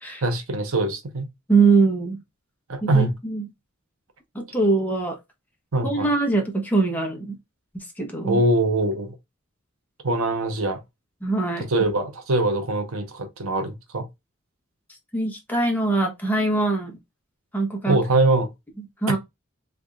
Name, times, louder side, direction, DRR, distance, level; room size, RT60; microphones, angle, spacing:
voice 1, 0.2-1.3 2.7-3.1 5.7-6.1 8.2-9.2 10.0-10.8 11.7-14.1 17.9-18.5, right 2 dB, 75° right, 0.9 m, -23 dB
voice 2, 1.5-2.2 2.8-3.5 4.3-5.2 5.8-7.4 8.0-8.4 11.2-11.7 15.1-17.0 17.5-18.0 19.0-19.2, right 3 dB, 10° left, 1.1 m, -22 dB
3.5 x 3.3 x 2.4 m
head